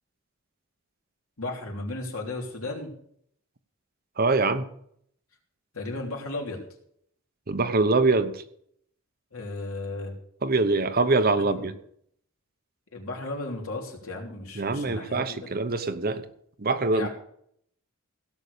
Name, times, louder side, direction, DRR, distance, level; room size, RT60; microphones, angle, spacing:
voice 1, 1.4-2.9 5.7-6.6 9.3-10.1 11.4-11.7 12.9-15.5 16.9-17.1, left 2 dB, 70° left, 1 dB, 3.2 m, -35 dB
voice 2, 4.2-4.6 7.5-8.4 10.4-11.7 14.6-16.2 16.6-17.1, right 3 dB, 45° right, 10 dB, 0.9 m, -24 dB
16.5 x 6.8 x 6.7 m, 0.67 s
head